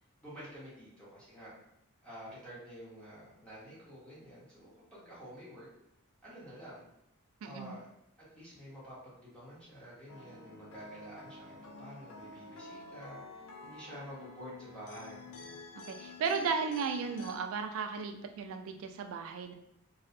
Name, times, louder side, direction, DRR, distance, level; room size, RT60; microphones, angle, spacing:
voice 1, 0.2-1.5 2.0-5.7 6.2-6.8 7.4-7.9 8.2-15.6, equal, 5° left, -9 dB, 0.7 m, -49 dB
voice 2, 7.4-7.8 15.9-19.5, right 5 dB, 65° right, 6 dB, 0.3 m, -35 dB
sound 1, 10.1-17.4, left 3 dB, 90° left, 0.4 m, -49 dB
2.5 x 2.0 x 2.5 m, 0.78 s
head